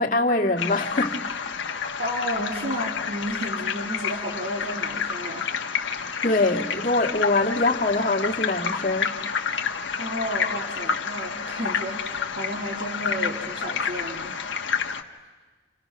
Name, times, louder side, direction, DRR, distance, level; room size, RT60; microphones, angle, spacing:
voice 1, 0.0-1.4 6.2-9.2, left 2 dB, 45° left, 0 dB, 1.9 m, -23 dB
sound 1, 0.6-15.0, left 6 dB, 85° left, 1.4 m, -29 dB
voice 2, 2.0-5.6 10.0-14.5, equal, 60° right, -5 dB, 3.1 m, -32 dB
30.0 x 30.0 x 6.0 m, 1.4 s
head